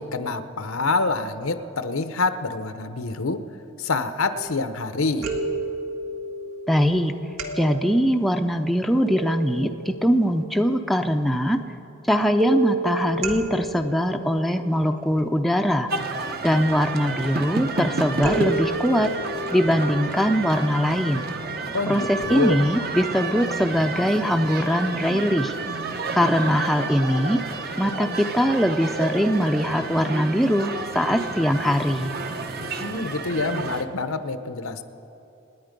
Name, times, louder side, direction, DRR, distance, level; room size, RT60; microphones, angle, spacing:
voice 1, 0.0-3.4 3.8-5.3 21.7-22.6 32.8-34.8, left 3 dB, 80° left, 10 dB, 0.9 m, -26 dB
sound 1, 4.4-4.8 5.2-10.8 12.4-15.6 18.2-21.5 22.2-22.3 22.7-22.8, right 2 dB, 80° right, 1.7 m, -32 dB
voice 2, 6.7-7.1 7.6-11.6 12.1-15.9 16.4-19.1 19.5-21.2 21.9-25.5 26.1-27.4 27.8-32.1, equal, ahead, 5 dB, 0.5 m, -22 dB
sound 2, 15.9-33.8, right 3 dB, 45° right, 0.9 m, -30 dB
27.5 x 10.0 x 5.2 m, 2.9 s
head